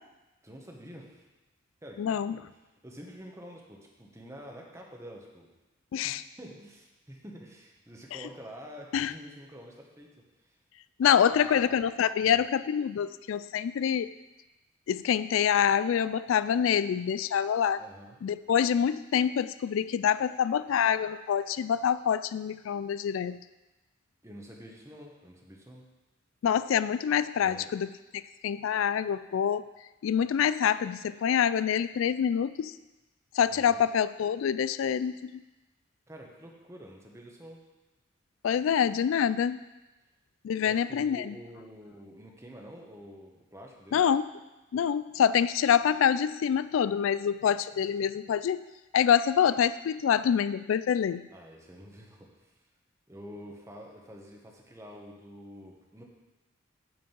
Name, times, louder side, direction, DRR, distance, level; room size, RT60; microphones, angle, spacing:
voice 1, 0.4-1.2 1.8-2.4 2.8-5.5 6.0-10.6 11.0-11.8 12.2-12.4 17.8-18.2 24.2-25.9 27.4-27.7 33.5-33.8 36.1-37.6 40.6-44.1 51.3-52.5 53.1-56.0, equal, 15° right, 0 dB, 1.3 m, -47 dB
voice 2, 2.0-2.4 5.9-6.2 8.9-9.1 11.0-14.1 14.9-17.8 18.2-23.4 26.4-27.9 28.4-29.6 30.0-32.7 33.4-35.4 38.4-39.6 40.4-41.3 43.9-44.3 44.7-48.6 48.9-51.2, left 8 dB, 75° left, 15 dB, 0.3 m, -26 dB
9.1 x 5.1 x 7.5 m, 1.1 s
head